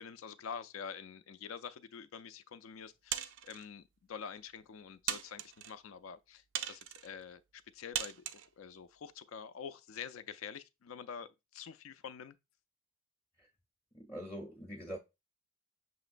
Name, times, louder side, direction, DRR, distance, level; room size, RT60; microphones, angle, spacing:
voice 1, 0.0-7.4 7.7-8.2 8.6-12.4, left 7 dB, 85° left, 0.4 m, -47 dB
sound 1, 3.1-3.7 4.4-4.5 5.1-5.7 6.5-7.1 7.9-8.5, right 10 dB, 60° right, 0.3 m, -38 dB
voice 2, 13.9-15.0, equal, 10° left, 0.5 m, -44 dB
6.3 x 3.0 x 2.5 m
head